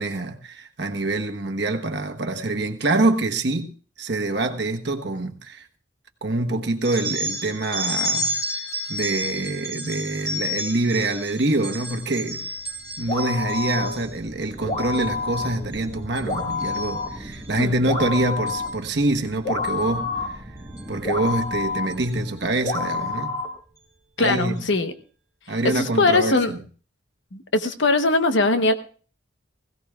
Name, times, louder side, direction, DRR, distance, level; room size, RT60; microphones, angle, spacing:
voice 1, 0.0-3.7 4.0-5.7 6.2-12.5 13.0-20.2 20.9-23.3 24.2-24.6 25.5-26.6, right 2 dB, 60° right, 1.1 m, -25 dB
sound 1, 6.8-14.1 14.6-15.0 15.3-15.8 16.1-17.5 18.5-18.7 19.6-19.8 20.8-20.9 21.3-21.4 21.9-22.1, equal, 15° left, 3.1 m, -31 dB
sound 2, 12.1-24.0, equal, 20° right, 1.4 m, -42 dB
sound 3, 13.1-14.1 14.7-15.7 16.3-17.1 17.9-18.7 19.5-20.3 21.0-21.9 22.6-23.5 24.2-24.3, left 3 dB, 35° left, 3.6 m, -28 dB
voice 2, 24.2-24.9 25.6-26.5 27.3-28.7, left 3 dB, 75° left, 1.0 m, -20 dB
20.5 x 16.5 x 2.4 m
head